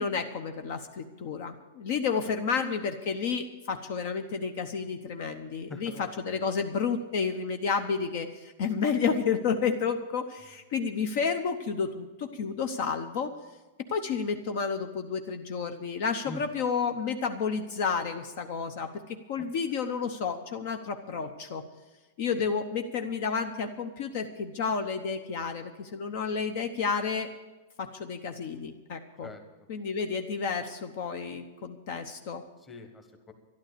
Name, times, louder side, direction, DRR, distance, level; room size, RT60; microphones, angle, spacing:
voice 1, 0.0-13.3 13.9-18.9 19.3-21.6 22.2-27.3 27.8-29.3 29.7-32.4, left 5 dB, 45° left, 7 dB, 0.9 m, -31 dB
voice 2, 5.7-6.4 16.2-16.5 19.4-19.5 22.3-22.5 29.2-29.4 32.6-33.3, left 2 dB, 10° left, 5 dB, 1.3 m, -44 dB
12.0 x 12.0 x 6.8 m, 1.2 s
supercardioid pair, 170°, 0 cm